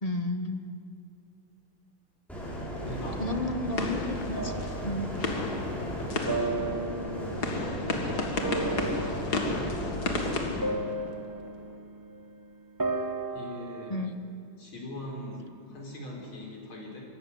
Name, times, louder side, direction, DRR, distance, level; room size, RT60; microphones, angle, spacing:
voice 1, 0.0-0.6 3.2-4.5 4.8-5.1 13.9-14.1, left 1 dB, 30° left, 6 dB, 0.8 m, -32 dB
sound 1, 2.3-10.3, equal, ahead, 5.4 m, -36 dB
sound 2, 2.4-11.5, left 3 dB, 50° left, 2.3 m, -34 dB
voice 2, 2.8-3.5 7.6-8.3 13.3-14.1 14.6-17.0, left 1 dB, 70° left, -1 dB, 4.9 m, -41 dB
sound 3, 4.3-5.1 6.2-12.4 12.8-14.1, right 2 dB, 20° right, 0.5 m, -35 dB
24.0 x 13.5 x 9.6 m, 2.6 s
omnidirectional pair, 2.4 m